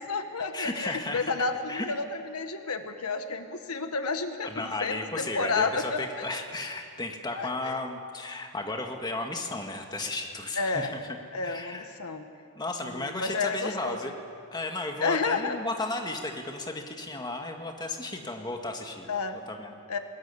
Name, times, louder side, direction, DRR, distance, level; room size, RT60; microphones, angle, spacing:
voice 1, 0.0-6.2 7.3-7.8 10.6-10.9 11.3-12.2 13.0-14.0 15.0-15.6 19.1-19.4 19.9-20.0, left 4 dB, 80° left, 7 dB, 1.5 m, -31 dB
voice 2, 0.5-1.2 1.7-1.9 4.4-11.0 11.4-11.9 12.6-14.1 14.5-19.1 19.5-19.7, left 2 dB, 20° left, 3 dB, 1.8 m, -34 dB
20.5 x 19.5 x 9.8 m, 2.4 s
head